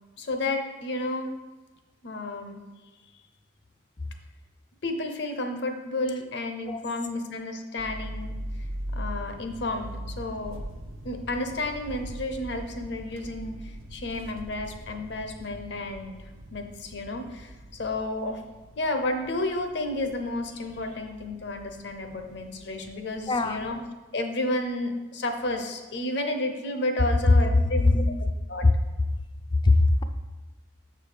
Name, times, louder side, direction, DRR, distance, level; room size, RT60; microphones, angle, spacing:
voice 1, 0.2-1.4 2.0-2.6 4.8-8.4 8.9-10.6 11.0-18.4 18.8-23.8 24.1-28.0 28.5-28.7, left 2 dB, 55° left, 5 dB, 0.8 m, -31 dB
sound 1, 7.8-23.8, right 1 dB, 85° right, 0.7 m, -41 dB
voice 2, 23.3-23.7 27.3-27.7 28.0-28.2 29.6-30.0, left 2 dB, 25° left, 8 dB, 0.4 m, -21 dB
7.1 x 4.8 x 4.9 m, 1.2 s
head